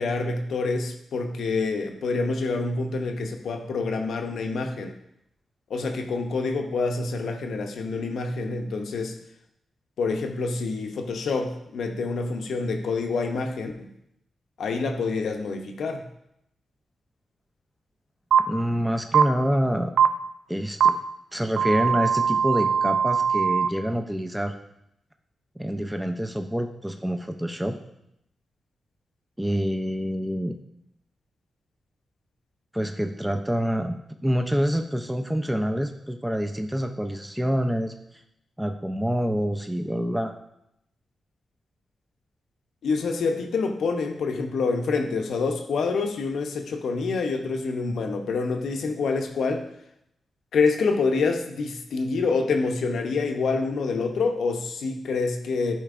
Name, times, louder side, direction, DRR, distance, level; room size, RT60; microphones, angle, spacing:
voice 1, 0.0-4.9 5.7-9.2 10.0-13.9 14.6-16.0 42.8-49.7 50.5-55.7, left 4 dB, 80° left, 5 dB, 0.7 m, -27 dB
sound 1, 18.3-18.4 19.1-19.2 20.0-20.1 20.8-20.9 21.6-23.7, right 7 dB, 70° right, 0.3 m, -20 dB
voice 2, 18.5-20.0 20.5-21.0 21.3-24.5 25.6-27.8 29.4-30.5 32.7-34.0 34.2-37.9 38.6-40.3, equal, 5° right, 5 dB, 0.5 m, -26 dB
10.0 x 4.5 x 2.5 m, 0.79 s
cardioid pair, 70°, 0 cm